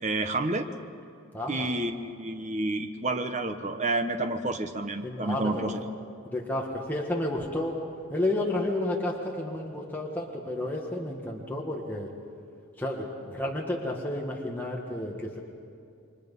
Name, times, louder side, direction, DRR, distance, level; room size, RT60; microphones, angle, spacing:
voice 1, 0.0-0.7 1.5-5.8, right 2 dB, 30° right, 7 dB, 1.1 m, -29 dB
voice 2, 1.3-1.7 5.0-5.7 6.2-7.8 8.1-12.1 12.8-15.4, left 1 dB, 10° left, -2 dB, 1.7 m, -31 dB
29.5 x 24.0 x 5.5 m, 2.5 s
head